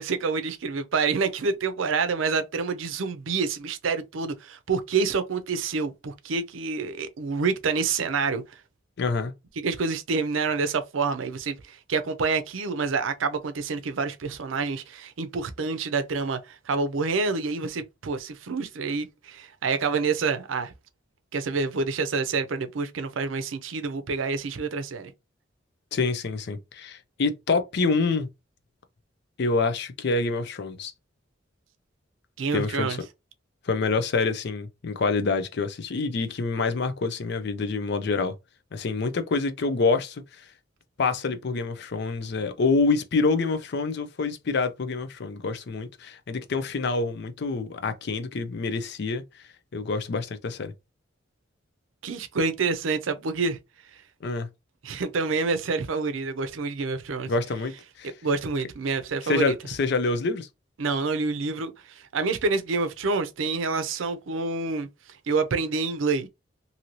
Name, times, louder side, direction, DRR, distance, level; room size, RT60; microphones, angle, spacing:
voice 1, 0.0-8.4 9.6-20.7 21.3-25.1 32.4-33.0 52.0-53.6 54.8-57.3 58.2-59.5 60.8-64.9 65.3-66.3, right 4 dB, 80° right, 0.5 m, -27 dB
voice 2, 9.0-9.3 25.9-28.3 29.4-30.9 32.5-33.0 33.6-38.3 38.7-40.5 41.0-49.4 49.7-50.7 54.2-54.5 57.3-57.7 58.0-58.1 59.2-60.5, left 4 dB, 60° left, 0.5 m, -26 dB
2.7 x 2.6 x 2.9 m
head